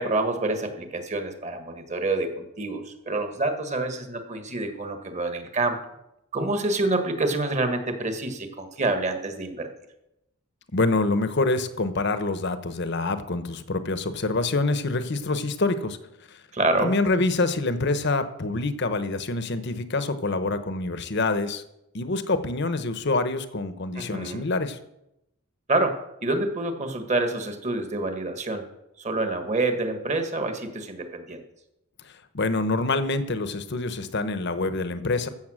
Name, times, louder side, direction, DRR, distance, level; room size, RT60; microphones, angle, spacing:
voice 1, 0.0-5.8 6.3-9.7 16.5-16.9 23.9-24.4 25.7-28.6 29.0-31.4, right 2 dB, 35° right, 6 dB, 1.6 m, -27 dB
voice 2, 10.7-16.0 16.8-21.6 21.9-24.8 32.3-35.3, left 3 dB, 55° left, 11 dB, 1.0 m, -26 dB
15.0 x 7.1 x 6.4 m, 0.86 s
head